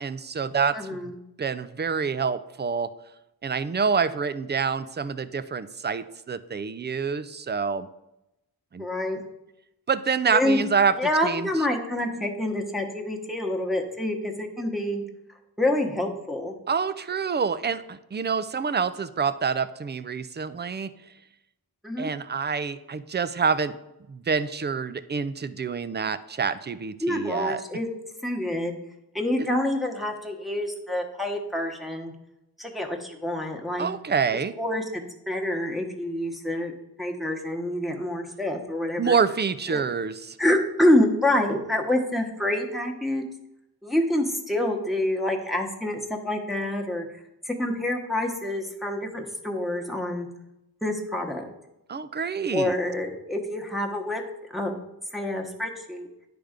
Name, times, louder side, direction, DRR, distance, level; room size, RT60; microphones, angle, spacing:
voice 1, 0.0-2.9 3.4-7.9 8.7-8.9 9.9-11.0 11.2-11.5 16.7-20.9 22.0-23.8 24.1-27.6 33.8-34.5 39.0-40.4 51.9-52.7, right 5 dB, 25° right, 14 dB, 0.4 m, -27 dB
voice 2, 0.7-1.2 8.8-9.3 10.3-10.6 10.9-15.0 15.6-16.5 21.8-22.1 27.0-27.9 28.2-28.8 29.1-32.1 32.6-33.9 34.6-36.7 37.0-39.1 39.7-39.8 40.4-43.3 43.8-47.1 47.4-50.3 50.8-51.5 52.5-54.2 54.5-54.8 55.1-56.1, left 1 dB, ahead, 0 dB, 1.1 m, -27 dB
10.0 x 3.4 x 5.0 m, 0.91 s
wide cardioid pair, 65°, 40 cm